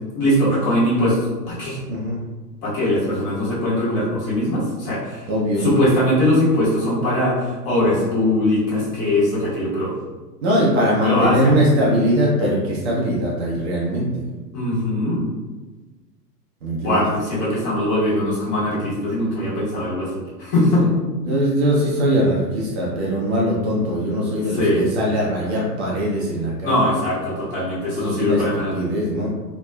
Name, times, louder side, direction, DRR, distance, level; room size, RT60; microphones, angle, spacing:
voice 1, 0.1-1.8 2.6-5.3 5.6-9.9 11.0-11.6 14.5-15.2 16.8-20.1 20.4-20.9 24.5-24.9 26.6-28.7, left 1 dB, 30° left, -9 dB, 1.4 m, -21 dB
voice 2, 1.9-2.2 5.3-5.7 10.4-14.1 16.6-17.0 20.8-26.8 28.0-28.4 28.7-29.3, equal, 40° right, -4 dB, 0.7 m, -21 dB
2.7 x 2.2 x 2.3 m, 1.3 s
figure-of-eight pair, 100°, 49 cm